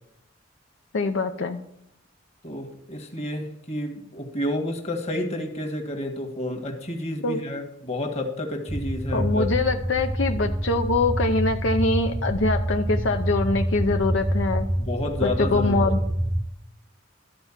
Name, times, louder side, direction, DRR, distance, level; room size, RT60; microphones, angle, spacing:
voice 1, 0.9-1.6 7.2-7.4 9.1-14.7 15.2-16.0, left 3 dB, 70° left, 5 dB, 0.6 m, -24 dB
voice 2, 2.4-9.5 14.8-15.9, left 1 dB, 35° left, 3 dB, 1.6 m, -30 dB
sound 1, 8.7-16.5, right 1 dB, 15° right, 0.4 m, -26 dB
13.0 x 4.5 x 7.3 m, 0.77 s
head